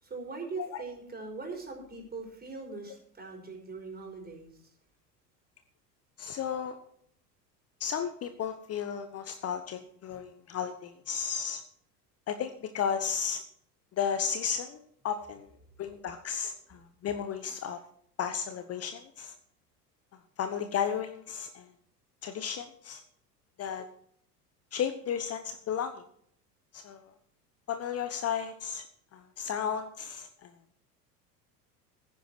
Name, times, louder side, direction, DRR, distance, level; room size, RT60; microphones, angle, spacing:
voice 1, 0.0-4.7 15.8-16.1, right 4 dB, 20° right, 2 dB, 5.4 m, -41 dB
voice 2, 6.2-6.7 7.8-11.6 12.3-13.4 13.9-15.5 15.8-17.8 18.2-19.3 20.4-21.7 22.2-23.0 23.6-23.9 24.7-26.0 26.7-27.0 27.7-28.8 29.1-30.5, left 7 dB, 30° left, 9 dB, 1.1 m, -34 dB
15.0 x 10.0 x 4.5 m, 0.65 s
figure-of-eight pair, 75°, 47 cm